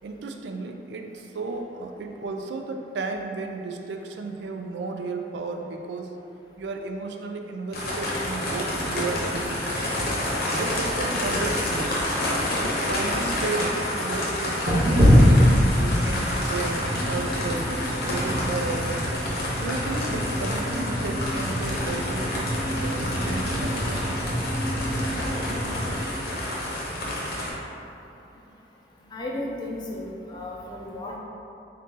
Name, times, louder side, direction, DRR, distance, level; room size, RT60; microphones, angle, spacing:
voice 1, 0.0-6.2 6.6-9.6 10.5-12.0 12.6-17.7 18.1-19.1 19.6-23.9, right 3 dB, 80° right, 4 dB, 0.3 m, -33 dB
sound 1, 7.7-27.5, left 1 dB, 60° left, 0.8 m, -29 dB
sound 2, 14.6-26.0, equal, 45° right, 0.7 m, -24 dB
voice 2, 29.1-31.2, left 1 dB, 25° left, -2 dB, 0.4 m, -34 dB
3.8 x 2.7 x 3.6 m, 2.8 s
head